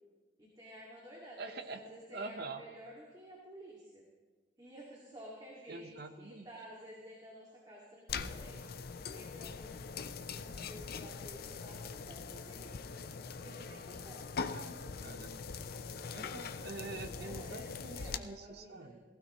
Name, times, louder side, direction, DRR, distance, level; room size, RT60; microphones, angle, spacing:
voice 1, 0.4-4.0 4.6-5.9 6.2-8.6 9.1-12.7 13.4-14.3 16.4-19.0, equal, 25° right, -4 dB, 2.2 m, -52 dB
voice 2, 1.4-1.8 2.1-2.6 5.7-6.5 14.3-15.4 16.1-19.0, right 3 dB, 60° right, 7 dB, 1.0 m, -45 dB
sound 1, 8.1-18.2, left 5 dB, 55° left, 0.5 m, -42 dB
18.5 x 15.5 x 3.1 m, 1.3 s
head